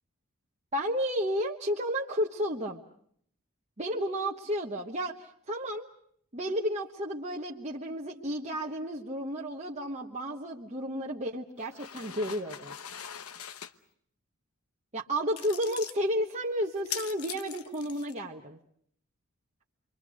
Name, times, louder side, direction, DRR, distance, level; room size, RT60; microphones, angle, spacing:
voice 1, 0.7-2.8 3.8-5.9 6.3-12.8 14.9-18.6, equal, 30° right, -1 dB, 1.2 m, -32 dB
sound 1, 11.6-13.7 15.4-16.0 16.7-18.2, left 9 dB, 85° left, 1.0 m, -41 dB
28.0 x 23.5 x 6.3 m, 0.63 s
head